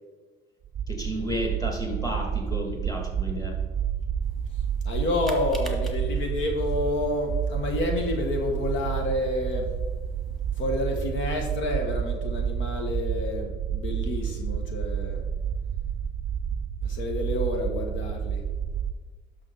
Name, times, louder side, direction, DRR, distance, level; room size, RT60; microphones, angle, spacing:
sound 1, 0.6-18.9, right 8 dB, 45° right, 0.5 m, -30 dB
voice 1, 0.9-3.6, equal, 15° left, 1 dB, 2.2 m, -32 dB
sound 2, 4.2-10.8, right 1 dB, ahead, 1.6 m, -48 dB
voice 2, 4.8-9.7 10.6-15.2 16.8-18.4, left 2 dB, 80° left, 3 dB, 1.4 m, -29 dB
10.5 x 6.4 x 4.0 m, 1.3 s
cardioid pair, 90°, 20 cm